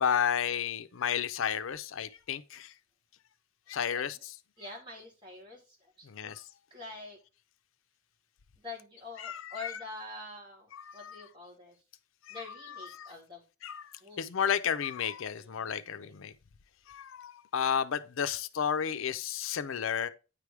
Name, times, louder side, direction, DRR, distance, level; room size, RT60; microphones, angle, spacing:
voice 1, 0.0-2.7 3.7-4.2 6.1-6.4 9.2-9.7 10.7-11.2 12.3-12.4 13.0-13.1 13.6-13.8 14.2-16.3 16.9-20.1, left 8 dB, 75° left, 0.5 m, -32 dB
voice 2, 3.9-4.2 4.6-6.1 6.7-7.2 8.6-11.8 12.3-13.4 14.0-14.4 15.3-16.1, left 3 dB, 25° right, 2.8 m, -46 dB
9.0 x 3.4 x 4.6 m
head